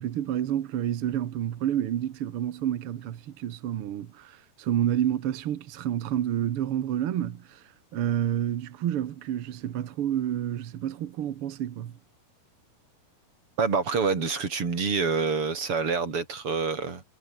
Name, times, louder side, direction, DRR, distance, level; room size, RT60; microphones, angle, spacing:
voice 1, 0.0-7.6 7.9-11.9, right 11 dB, 85° right, 1.2 m, -29 dB
voice 2, 13.6-17.0, right 5 dB, 35° right, 4.3 m, -27 dB
omnidirectional pair, 4.4 m